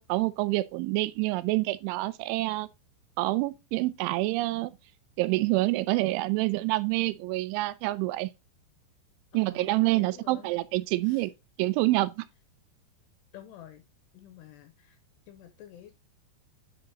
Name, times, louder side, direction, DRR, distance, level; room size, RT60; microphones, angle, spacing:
voice 1, 0.0-2.7 3.2-4.7 5.2-8.3 9.3-11.3 11.6-12.3, right 19 dB, 85° right, 2.9 m, -27 dB
voice 2, 9.3-10.6 11.0-11.3 13.3-13.8 14.1-15.0 15.3-16.0, left 11 dB, 80° left, 2.6 m, -49 dB
9.7 x 4.9 x 2.9 m
omnidirectional pair, 5.5 m